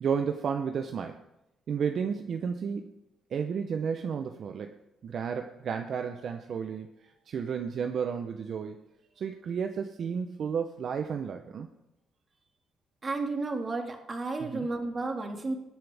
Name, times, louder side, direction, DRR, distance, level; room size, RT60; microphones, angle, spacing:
voice 1, 0.0-1.2 1.7-2.9 3.3-4.8 5.0-6.9 7.3-8.8 9.2-11.7 14.4-14.7, right 6 dB, 60° right, 6 dB, 0.7 m, -32 dB
voice 2, 13.0-15.5, right 3 dB, 35° right, 3 dB, 2.0 m, -32 dB
20.0 x 7.6 x 3.5 m, 0.90 s
cardioid pair, 90°, 0 cm